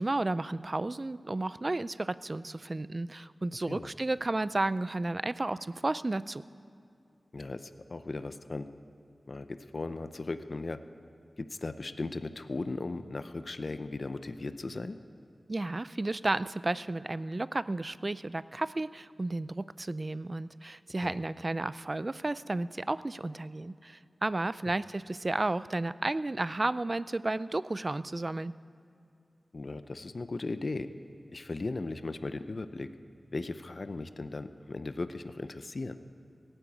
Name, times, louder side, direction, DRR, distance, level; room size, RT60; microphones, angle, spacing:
voice 1, 0.0-6.4 15.5-28.5, right 2 dB, 40° right, 16 dB, 0.4 m, -32 dB
voice 2, 7.3-8.7 9.3-10.8 11.4-15.0 21.0-21.2 29.5-30.9 31.3-32.9 33.3-36.0, left 3 dB, 55° left, 11 dB, 0.6 m, -37 dB
17.0 x 9.0 x 8.5 m, 2.4 s
wide cardioid pair, 55°, 0 cm